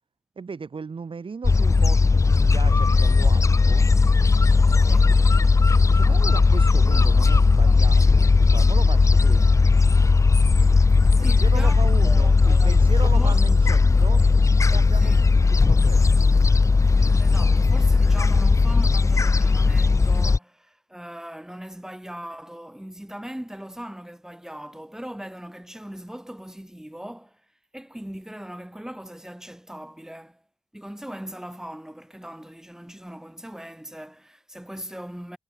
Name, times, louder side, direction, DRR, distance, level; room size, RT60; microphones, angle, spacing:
voice 1, 0.4-3.8 5.9-9.5 11.2-14.2 14.7-16.1, right 5 dB, 60° right, 4.5 m, -36 dB
Gull seagull, 1.4-20.4, left 4 dB, 30° left, 0.5 m, -17 dB
voice 2, 4.8-5.3 11.1-11.8 12.0-13.4 15.0-15.3 17.2-27.4 27.7-30.4 30.7-35.4, equal, 5° right, 5.1 m, -39 dB
wide cardioid pair, 110°, 10 cm